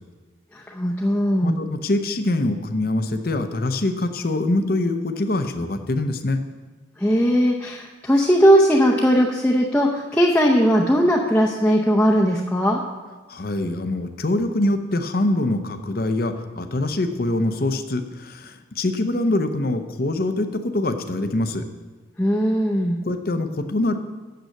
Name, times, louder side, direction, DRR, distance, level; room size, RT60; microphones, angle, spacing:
voice 1, 0.5-1.6 7.0-12.8 22.2-23.0, equal, 5° left, -3 dB, 0.7 m, -18 dB
voice 2, 1.4-6.4 13.3-21.6 23.0-24.0, left 2 dB, 50° left, 7 dB, 0.7 m, -24 dB
9.2 x 7.0 x 6.5 m, 1.3 s
head